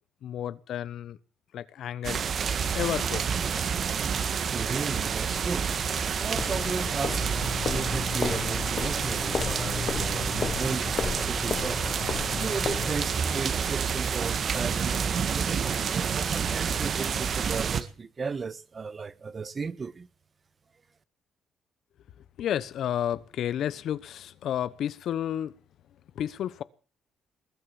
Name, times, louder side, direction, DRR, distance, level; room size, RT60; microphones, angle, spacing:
voice 1, 0.2-1.2 1.5-2.2 2.7-3.3 22.4-25.6 26.1-26.6, left 10 dB, 70° left, 0.9 m, -31 dB
sound 1, 2.0-17.8, right 7 dB, 55° right, 1.7 m, -29 dB
voice 2, 4.5-5.7 6.2-7.4 7.6-11.8 12.4-20.1, right 5 dB, 35° right, 1.2 m, -35 dB
sound 2, 6.3-13.2, left 6 dB, 45° left, 1.0 m, -33 dB
20.5 x 9.0 x 7.0 m
cardioid pair, 90°, 0 cm